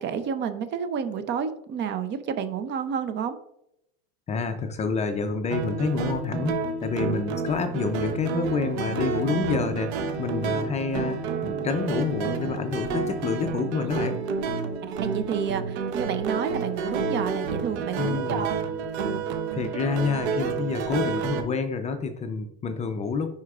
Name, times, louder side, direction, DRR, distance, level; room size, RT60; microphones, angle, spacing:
voice 1, 0.0-3.4 14.8-18.6, right 7 dB, 35° right, 10 dB, 0.6 m, -30 dB
voice 2, 4.3-14.2 18.0-18.5 19.5-23.3, left 5 dB, 20° left, 7 dB, 0.5 m, -28 dB
sound 1, 5.5-21.4, right 5 dB, 85° right, 0.9 m, -29 dB
9.7 x 4.4 x 2.4 m, 0.79 s
supercardioid pair, 130°, 32 cm